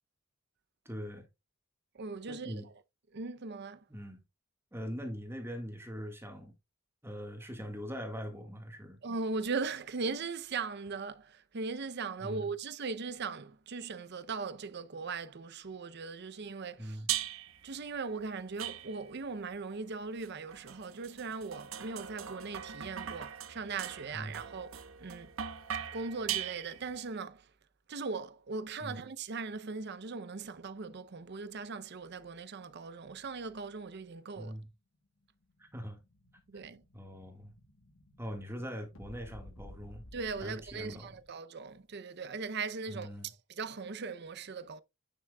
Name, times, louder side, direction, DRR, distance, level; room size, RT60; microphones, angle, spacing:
voice 1, 0.8-1.3 2.3-2.7 3.9-4.2 4.7-6.5 7.0-9.0 12.2-12.5 16.8-17.1 24.1-24.4 28.8-29.0 34.3-34.7 35.6-36.0 36.5-36.6 36.9-37.5 38.2-40.0 40.4-41.1 42.9-43.3, equal, 10° right, 1.7 m, -42 dB
voice 2, 1.9-2.6 3.1-3.8 9.0-17.0 17.6-25.3 25.7-27.4 27.9-34.5 36.5-36.8 40.1-44.8, right 4 dB, 55° right, 0.6 m, -39 dB
sound 1, 17.1-17.6 18.6-19.3 20.2-27.0, right 10 dB, 85° right, 0.9 m, -40 dB
Explosion, 35.2-41.3, left 1 dB, 75° left, 1.4 m, -55 dB
9.7 x 6.1 x 2.3 m
head